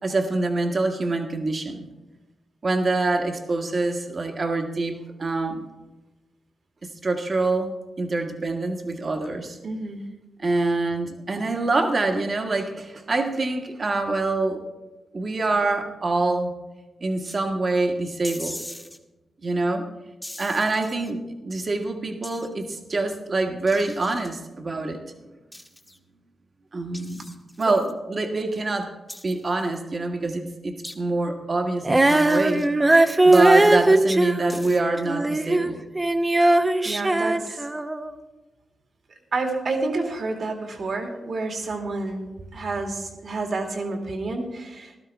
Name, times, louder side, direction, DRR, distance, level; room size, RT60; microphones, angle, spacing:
voice 1, 0.0-1.8 2.6-5.6 6.8-9.6 10.4-14.6 15.1-16.5 17.0-18.6 19.4-19.9 20.4-25.0 26.7-28.9 29.2-32.7 33.2-35.8, right 2 dB, 45° right, 4 dB, 1.5 m, -25 dB
voice 2, 9.6-10.1 27.6-27.7 36.5-37.6 39.3-42.3 42.5-45.0, right 3 dB, 65° right, 3 dB, 2.2 m, -29 dB
sound 1, 17.2-17.4 18.2-19.0 20.2-21.1 22.2-22.5 23.7-24.3 25.5-26.0 26.9-27.9 29.1-29.8 30.8-31.0 32.1-32.7 33.3-33.8 34.5-34.8, left 1 dB, 10° left, 1.4 m, -41 dB
Female singing, 31.8-35.7 36.0-38.1, right 2 dB, 25° right, 0.8 m, -19 dB
15.0 x 12.0 x 3.5 m, 1.1 s
supercardioid pair, 50°, 0 cm